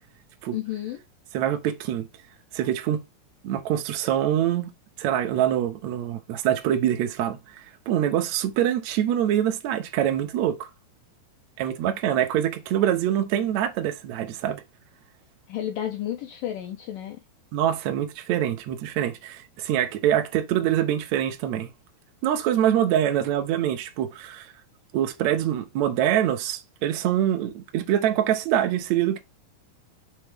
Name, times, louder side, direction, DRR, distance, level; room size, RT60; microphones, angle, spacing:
voice 1, 0.5-1.0 15.5-17.2, left 11 dB, 75° left, 2.1 m, -32 dB
voice 2, 1.3-2.1 2.5-3.0 3.4-4.7 5.0-10.7 11.6-14.6 17.5-21.7 22.2-24.5 24.9-29.2, right 11 dB, 85° right, 1.6 m, -25 dB
6.4 x 4.5 x 3.6 m
omnidirectional pair, 4.8 m